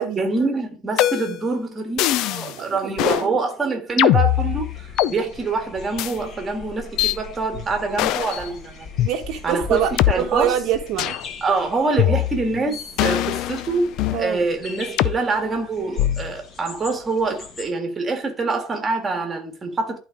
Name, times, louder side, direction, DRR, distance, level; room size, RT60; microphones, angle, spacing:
voice 1, 0.2-8.9 9.4-10.5 11.4-20.0, right 3 dB, 15° right, 1.8 m, -25 dB
sound 1, 1.0-1.5 2.0-2.5 3.0-3.3 4.0-5.1 6.0-6.1 7.0-7.2 8.0-8.4 9.0-9.1 10.0-10.1 11.0-11.2 12.0-12.6 13.0-14.2 15.0-15.2 16.0-16.4, left 14 dB, 50° left, 0.5 m, -21 dB
voice 2, 2.5-3.4 9.0-11.2 14.1-14.4, right 9 dB, 50° right, 1.1 m, -25 dB
sound 2, 4.3-17.7, left 5 dB, 30° left, 2.2 m, -40 dB
11.5 x 4.1 x 4.9 m
cardioid pair, 160°, 0 cm